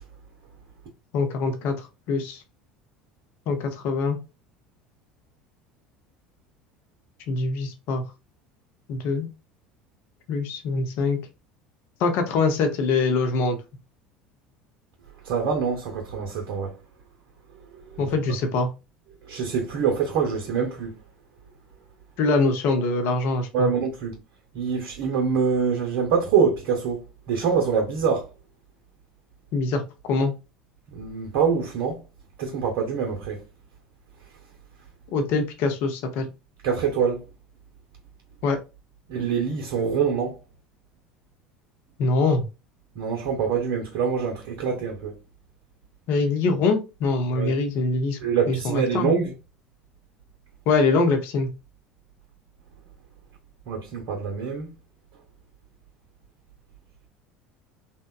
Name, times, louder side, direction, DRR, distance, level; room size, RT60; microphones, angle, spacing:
voice 1, 1.1-1.7 2.1-2.4 3.5-4.2 7.3-8.0 8.9-9.3 10.3-11.2 12.0-13.6 18.0-18.7 22.2-23.7 29.5-30.3 35.1-36.3 38.4-38.6 42.0-42.5 46.1-48.2 48.5-49.1 50.7-51.5, left 3 dB, 60° left, 0.6 m, -23 dB
voice 2, 15.2-16.8 17.7-18.4 19.2-21.0 23.5-24.1 24.5-28.3 30.9-32.0 32.4-33.4 36.6-37.3 39.1-40.4 42.9-45.1 47.3-47.5 48.2-49.3 53.7-54.7, right 6 dB, 65° right, 0.6 m, -25 dB
2.8 x 2.1 x 2.2 m
hypercardioid pair, 75°, 4 cm